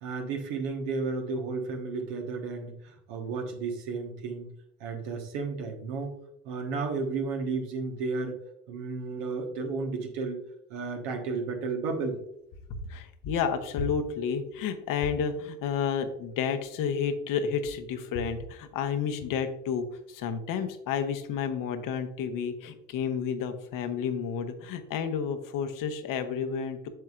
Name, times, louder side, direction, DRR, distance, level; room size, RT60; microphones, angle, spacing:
voice 1, 0.0-4.5 4.8-6.1 6.4-8.4 8.7-10.4 10.7-12.2, right 4 dB, 75° right, 3 dB, 1.4 m, -33 dB
voice 2, 12.7-26.9, left 6 dB, 60° left, 8 dB, 1.0 m, -31 dB
7.8 x 6.7 x 2.5 m, 0.78 s
hypercardioid pair, 65°, 37 cm